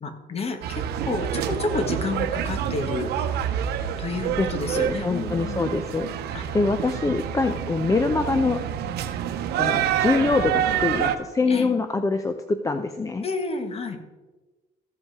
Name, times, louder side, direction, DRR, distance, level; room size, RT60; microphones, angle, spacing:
voice 1, 0.0-3.1 4.0-5.7 6.3-6.6 7.0-7.2 11.5-11.7 13.2-14.0, left 3 dB, 35° left, 7 dB, 1.5 m, -30 dB
sound 1, 0.6-11.2, right 9 dB, 75° right, 0.8 m, -27 dB
voice 2, 4.7-6.1 6.5-8.6 9.6-13.2, left 3 dB, 20° left, 8 dB, 0.6 m, -24 dB
15.0 x 5.3 x 4.7 m, 1.2 s
cardioid pair, 110°, 17 cm